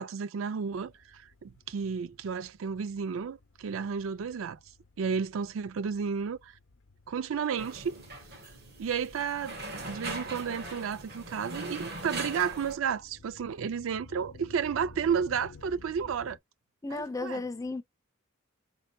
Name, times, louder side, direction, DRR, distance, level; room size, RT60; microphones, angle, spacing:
voice 1, 0.0-4.6 5.0-6.5 7.1-8.0 8.8-16.4 16.9-17.4, right 6 dB, 85° right, 0.4 m, -32 dB
sound 1, 0.7-16.4, left 3 dB, 80° left, 0.7 m, -55 dB
sound 2, 7.6-12.8, right 2 dB, 55° right, 1.4 m, -40 dB
voice 2, 16.8-17.8, left 3 dB, 15° left, 0.4 m, -34 dB
5.4 x 3.8 x 2.2 m
head